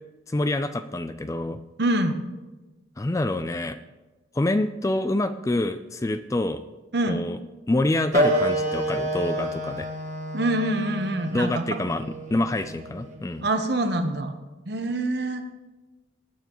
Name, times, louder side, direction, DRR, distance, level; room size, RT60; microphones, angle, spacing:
voice 1, 0.3-1.6 3.0-3.8 4.3-6.6 7.1-7.4 7.7-9.9 11.3-12.0 12.3-13.5, left 2 dB, 15° left, 11 dB, 0.3 m, -26 dB
voice 2, 1.8-2.2 6.9-7.2 10.3-11.7 13.4-14.4 14.7-15.4, right 1 dB, 55° right, 7 dB, 1.0 m, -25 dB
Wind instrument woodwind instrument, 8.1-13.2, right 1 dB, 40° right, 1.6 m, -28 dB
20.0 x 9.1 x 3.1 m, 1.2 s
head